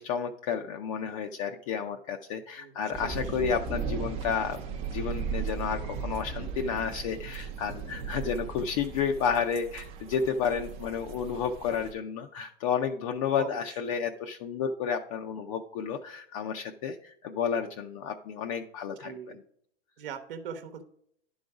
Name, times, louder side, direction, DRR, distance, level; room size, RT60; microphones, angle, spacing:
voice 1, 0.0-19.1, left 6 dB, 35° left, 4 dB, 0.4 m, -31 dB
sound 1, 2.9-11.9, right 6 dB, 20° right, 0.5 m, -37 dB
voice 2, 19.0-19.4 20.0-20.8, right 7 dB, 65° right, 8 dB, 1.0 m, -40 dB
11.0 x 3.9 x 4.7 m, 0.70 s
hypercardioid pair, 150°, 30 cm